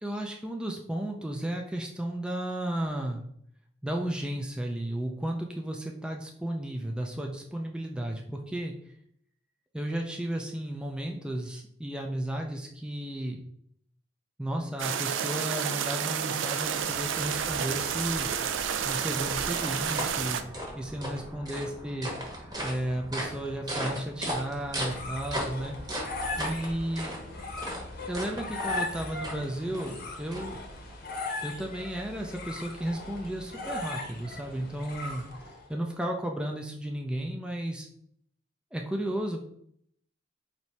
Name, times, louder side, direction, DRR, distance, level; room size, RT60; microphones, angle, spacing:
voice 1, 0.0-3.3 3.8-8.7 9.7-13.4 14.4-18.3 18.8-20.4 20.8-22.1 22.4-25.8 26.3-27.2 28.1-30.6 31.4-35.3 35.7-37.9 38.7-39.4, right 1 dB, 5° right, 1 dB, 0.4 m, -33 dB
sound 1, 14.8-20.4, right 8 dB, 85° right, 0.3 m, -30 dB
sound 2, 16.8-31.0, equal, 20° right, 0.9 m, -38 dB
sound 3, 24.5-35.7, left 2 dB, 55° left, 0.8 m, -38 dB
3.0 x 2.7 x 4.4 m, 0.68 s
head